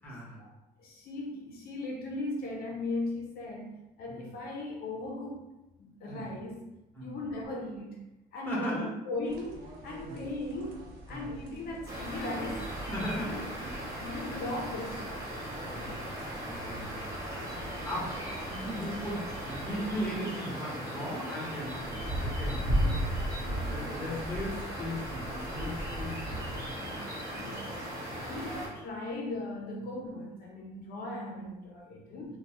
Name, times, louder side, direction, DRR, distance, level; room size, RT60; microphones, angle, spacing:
voice 1, 0.0-0.4 4.1-4.3 6.1-6.2 6.9-7.3 8.5-8.9 10.0-10.2 11.1-11.3 12.9-13.7 15.6-22.7 23.6-26.5 26.9-27.1 31.9-32.0, equal, 10° left, -5 dB, 1.2 m, -38 dB
voice 2, 0.8-5.4 5.8-6.6 7.0-8.0 8.3-12.8 13.1-13.4 14.0-15.1 22.6-23.0 23.3-23.8 26.8-32.4, left 2 dB, 65° left, 0 dB, 0.5 m, -38 dB
sound 1, 9.2-20.1, right 2 dB, 70° right, 0.7 m, -48 dB
sound 2, 11.9-28.7, equal, 20° right, 1.1 m, -36 dB
3.2 x 2.1 x 3.0 m, 0.98 s
cardioid pair, 110°, 17 cm